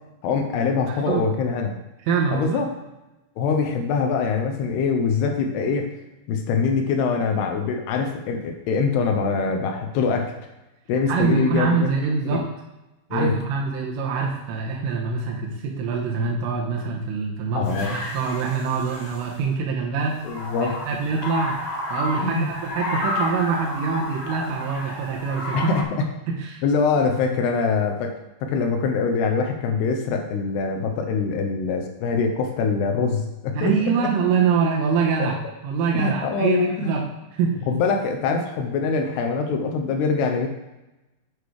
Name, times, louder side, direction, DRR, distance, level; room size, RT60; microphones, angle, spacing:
voice 1, 0.2-1.8 2.3-2.7 3.4-5.9 6.3-10.3 10.9-11.9 12.3-12.4 13.1-13.4 17.5-17.9 20.2-20.8 22.2-22.5 25.5-25.8 26.6-28.2 28.4-33.7 35.9-36.9 37.7-40.5, left 5 dB, 75° left, 5 dB, 2.5 m, -23 dB
voice 2, 2.1-2.6 11.1-12.5 13.1-20.2 20.9-21.6 21.9-25.7 26.3-26.6 33.5-37.0 37.4-37.6, right 5 dB, 85° right, -2 dB, 3.7 m, -24 dB
sound 1, 17.6-19.3 20.0-25.8, left 2 dB, 55° left, 3.5 m, -31 dB
8.6 x 6.6 x 4.8 m, 1.0 s
omnidirectional pair, 5.6 m